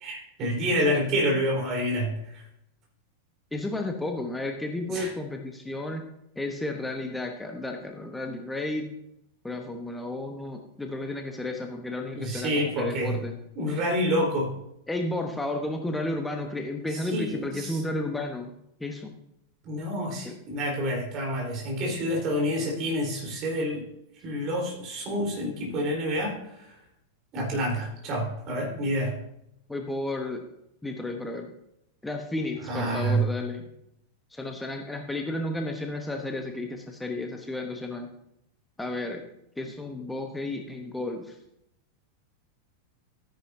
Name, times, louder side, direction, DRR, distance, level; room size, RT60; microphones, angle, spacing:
voice 1, 0.0-2.4 4.9-5.1 12.1-13.2 13.6-14.5 17.1-17.8 19.6-23.8 24.2-26.7 27.3-29.1 32.7-33.3, equal, 35° right, -2 dB, 4.1 m, -28 dB
voice 2, 3.5-6.0 6.4-8.9 9.4-13.4 14.9-18.5 18.8-19.1 20.2-20.4 29.7-30.4 30.8-31.5 32.0-33.6 34.3-38.1 38.8-39.2 39.6-41.4, left 2 dB, 5° left, 3 dB, 1.0 m, -32 dB
13.0 x 10.0 x 2.8 m, 0.81 s
figure-of-eight pair, 90°, 0 cm